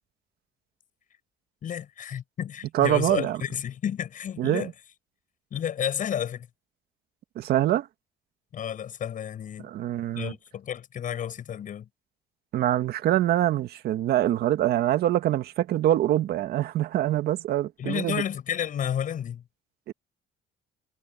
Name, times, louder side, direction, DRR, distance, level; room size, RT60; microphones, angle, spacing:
voice 1, 1.6-4.7 5.5-6.5 8.5-9.7 10.1-11.9 17.8-19.4, left 9 dB, 50° left, 7.8 m, -31 dB
voice 2, 2.7-3.4 4.4-4.7 7.4-7.9 9.6-10.3 12.5-18.2 19.9-20.0, right 13 dB, 70° right, 1.9 m, -24 dB
cardioid pair, 110°, 17 cm